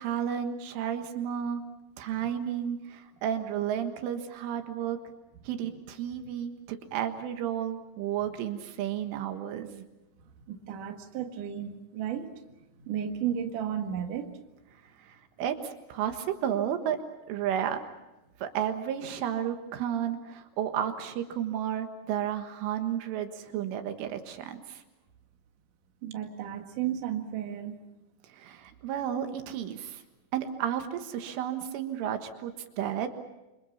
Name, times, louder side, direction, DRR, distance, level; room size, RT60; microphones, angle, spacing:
voice 1, 0.0-1.6 2.0-5.0 5.5-9.9 15.0-17.0 17.3-17.8 18.4-24.8 28.3-30.0 30.3-33.1, right 9 dB, 75° right, 6 dB, 3.9 m, -32 dB
voice 2, 10.5-12.4 12.8-14.3 26.0-27.8, right 9 dB, 55° right, 4 dB, 2.6 m, -33 dB
28.5 x 26.0 x 5.7 m, 1.0 s
omnidirectional pair, 5.9 m